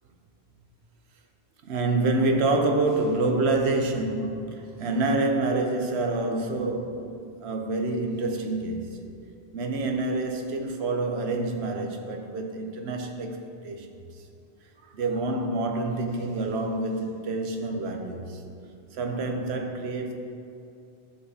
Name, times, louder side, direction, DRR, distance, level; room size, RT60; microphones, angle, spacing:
voice 1, 1.6-9.1 9.5-13.4 13.6-13.9 14.8-18.4 18.9-20.1, right 2 dB, 75° right, 4 dB, 1.0 m, -27 dB
11.5 x 5.8 x 2.8 m, 2.5 s
omnidirectional pair, 1.1 m